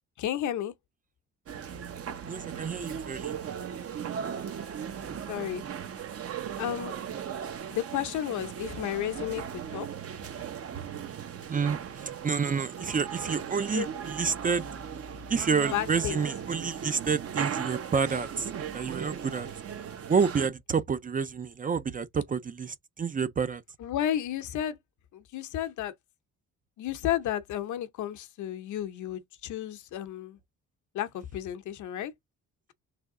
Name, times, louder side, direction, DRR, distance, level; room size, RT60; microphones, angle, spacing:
voice 1, 0.2-0.7 5.3-5.6 6.6-6.9 7.7-9.9 13.7-13.9 15.7-16.3 23.8-24.8 25.1-25.9 26.8-30.4 30.9-32.1, left 11 dB, 75° left, 0.7 m, -32 dB
sound 1, 1.5-20.5, right 8 dB, 50° right, 0.9 m, -37 dB
voice 2, 2.3-3.4 11.5-14.6 15.3-18.5 18.7-19.5 20.1-23.6, right 6 dB, 30° right, 0.4 m, -29 dB
3.4 x 3.3 x 3.6 m
cardioid pair, 90°, 30 cm